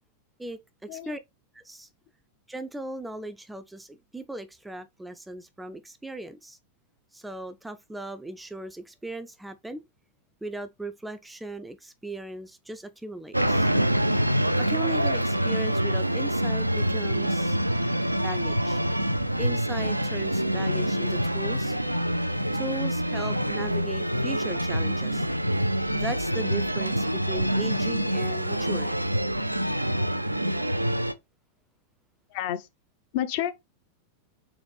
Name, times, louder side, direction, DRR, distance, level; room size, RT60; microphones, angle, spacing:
voice 1, 0.4-1.2 1.5-1.9 2.5-6.6 7.1-9.8 10.4-13.7 14.6-17.6 18.2-18.8 19.4-21.8 22.5-25.3 25.9-29.0, right 1 dB, 5° right, 0.3 m, -38 dB
sound 1, 13.3-31.1, equal, 85° right, 0.3 m, -26 dB
voice 2, 32.3-32.7 33.1-33.5, left 12 dB, 50° left, 0.6 m, -29 dB
4.0 x 3.1 x 3.2 m
figure-of-eight pair, 90°, 0 cm